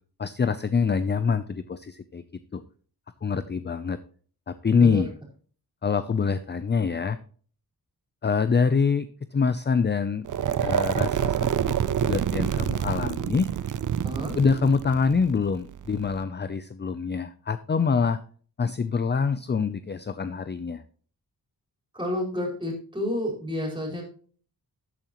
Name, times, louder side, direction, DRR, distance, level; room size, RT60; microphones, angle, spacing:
voice 1, 0.2-2.2 2.5-2.6 3.2-4.0 4.5-5.1 5.8-7.2 8.2-10.3 10.6-11.8 12.0-13.5 14.3-18.2 18.6-20.8, left 5 dB, 30° left, 12 dB, 0.5 m, -25 dB
sound 1, 10.2-16.2, right 9 dB, 55° right, 0.5 m, -27 dB
voice 2, 14.0-14.3 21.9-24.0, left 1 dB, 10° right, -1 dB, 4.8 m, -30 dB
12.5 x 9.0 x 3.0 m, 0.44 s
wide cardioid pair, 110°, 38 cm